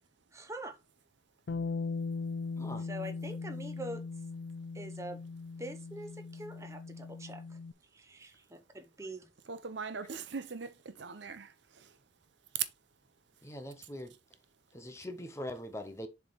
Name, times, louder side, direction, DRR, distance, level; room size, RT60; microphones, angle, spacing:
voice 1, 0.3-0.8 2.9-4.0 4.7-5.2 5.6-7.6 7.9-9.3, right 1 dB, 15° right, 0.8 m, -44 dB
Bass guitar, 1.5-7.7, left 4 dB, 70° left, 0.4 m, -39 dB
voice 2, 9.5-12.0, right 4 dB, 80° right, 0.8 m, -42 dB
voice 3, 13.4-14.1 14.7-16.1, left 1 dB, 15° left, 0.8 m, -42 dB
7.3 x 3.4 x 4.0 m
head